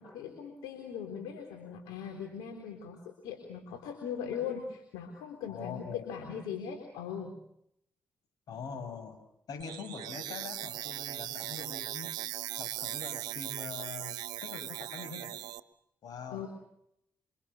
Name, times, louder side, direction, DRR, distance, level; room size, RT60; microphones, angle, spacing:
voice 1, 0.0-7.4 16.3-16.5, left 7 dB, 85° left, 3 dB, 3.8 m, -40 dB
voice 2, 5.5-6.0 8.5-12.2 12.6-15.4 16.0-16.4, left 5 dB, 70° left, 9 dB, 6.5 m, -43 dB
sound 1, 9.6-15.6, right 14 dB, 80° right, 1.1 m, -39 dB
28.0 x 25.5 x 6.8 m, 0.76 s
hypercardioid pair, 45°, 7 cm